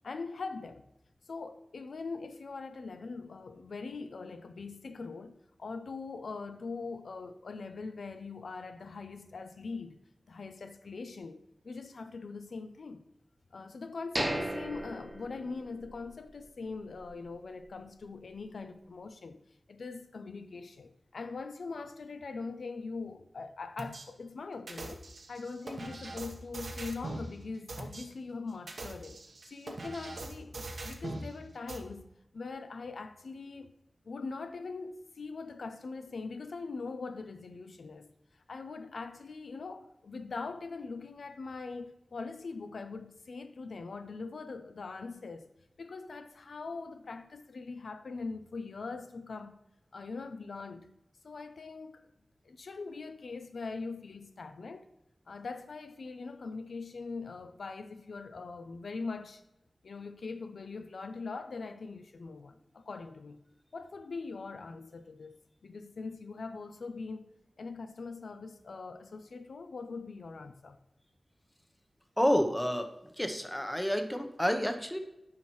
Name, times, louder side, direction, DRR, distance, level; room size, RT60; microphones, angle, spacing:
voice 1, 0.0-0.8 1.3-10.0 10.3-13.0 13.5-19.4 19.7-25.0 25.3-29.2 29.5-32.0 32.3-33.7 34.0-45.5 45.8-49.5 49.9-50.9 51.2-52.1 52.4-54.9 55.3-59.4 59.8-63.4 63.7-67.3 67.6-70.8, left 4 dB, 85° left, 0.5 m, -42 dB
sound 1, 14.2-16.1 16.4-16.5 17.0-17.2, right 1 dB, 20° right, 1.1 m, -36 dB
sound 2, 23.8-24.0 24.7-27.3 27.7-28.0 28.5-31.3 31.7-31.8, right 2 dB, 75° right, 1.1 m, -41 dB
voice 2, 72.2-72.9 73.2-75.0, equal, 5° left, 0.8 m, -29 dB
10.5 x 5.6 x 3.1 m
wide cardioid pair, 90°, 0 cm